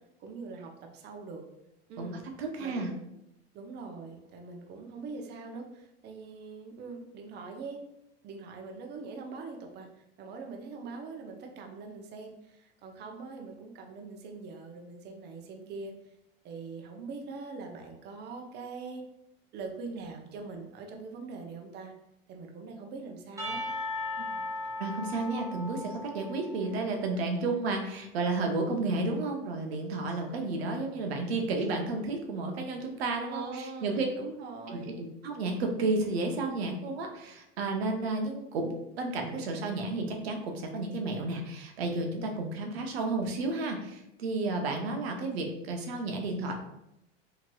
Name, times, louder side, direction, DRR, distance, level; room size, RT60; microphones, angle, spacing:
voice 1, 0.2-1.4 1.9-2.2 2.6-3.1 3.5-7.8 8.2-15.9 16.4-19.0 19.5-21.9 22.3-23.6 33.3-35.0, right 4 dB, 35° right, 3 dB, 0.5 m, -42 dB
voice 2, 2.4-2.9 24.8-34.1 34.7-38.7 39.0-46.5, right 3 dB, 90° right, 3 dB, 0.6 m, -32 dB
Percussion / Church bell, 23.4-27.0, left 2 dB, 10° right, 0.8 m, -37 dB
2.9 x 2.8 x 2.2 m, 0.84 s
hypercardioid pair, 100°, 30 cm